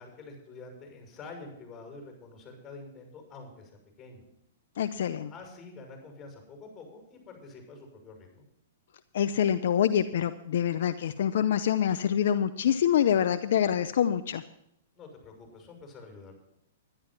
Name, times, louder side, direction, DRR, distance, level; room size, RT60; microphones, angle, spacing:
voice 1, 0.0-4.2 5.3-8.4 14.9-16.4, left 3 dB, 20° left, 2 dB, 6.3 m, -47 dB
voice 2, 4.8-5.3 9.1-14.4, left 9 dB, 65° left, 10 dB, 0.6 m, -26 dB
11.5 x 11.0 x 5.9 m, 0.75 s
hypercardioid pair, 130°, 0 cm